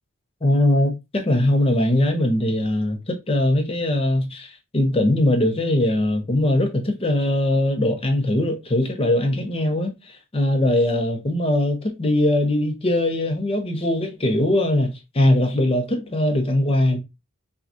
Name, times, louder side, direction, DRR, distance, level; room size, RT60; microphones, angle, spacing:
voice 1, 0.4-17.0, left 1 dB, 25° left, 0.6 m, -21 dB
5.9 x 2.3 x 2.6 m
head